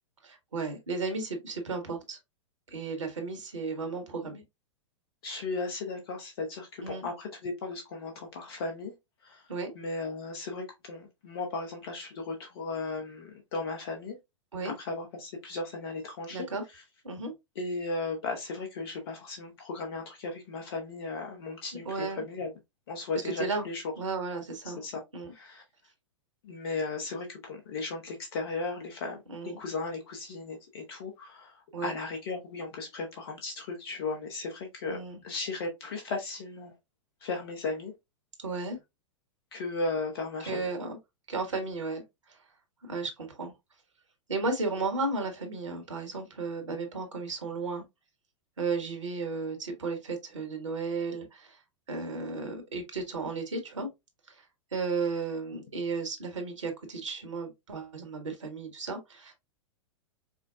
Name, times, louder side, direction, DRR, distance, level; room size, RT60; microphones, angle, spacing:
voice 1, 0.2-2.2 2.7-4.4 6.8-7.1 9.5-9.7 14.5-14.7 16.3-16.6 17.0-17.3 21.8-22.2 23.2-23.7 24.0-24.8 25.1-25.3 29.3-29.6 31.7-31.9 34.9-35.2 38.4-38.8 40.4-41.0 41.3-42.0 42.3-42.4 42.8-43.5 44.3-47.8 48.6-51.6 51.9-53.9 54.3-54.4 54.7-59.3, right 3 dB, 70° right, 1.3 m, -34 dB
voice 2, 5.2-8.9 9.2-9.4 9.7-14.2 14.6-16.5 17.6-22.5 22.9-23.8 24.6-25.0 25.3-25.6 26.4-29.2 29.6-35.0 35.2-36.7 37.2-37.9 39.5-40.7, left 3 dB, 50° left, 1.0 m, -36 dB
4.9 x 2.2 x 2.5 m
figure-of-eight pair, 100°, 16 cm